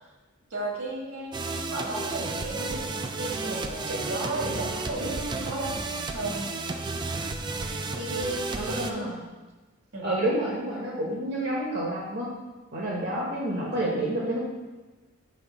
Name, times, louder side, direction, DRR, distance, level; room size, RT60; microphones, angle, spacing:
voice 1, 0.5-2.9 3.2-5.8 6.1-6.5 8.0-9.1 9.9-10.1, right 1 dB, 75° right, -2 dB, 1.7 m, -34 dB
sound 1, 1.3-8.9, right 3 dB, 20° right, 0.3 m, -32 dB
voice 2, 8.5-9.1 10.0-12.3 12.7-14.4, right 1 dB, 50° right, -4 dB, 1.0 m, -29 dB
7.5 x 3.2 x 5.8 m, 1.2 s
head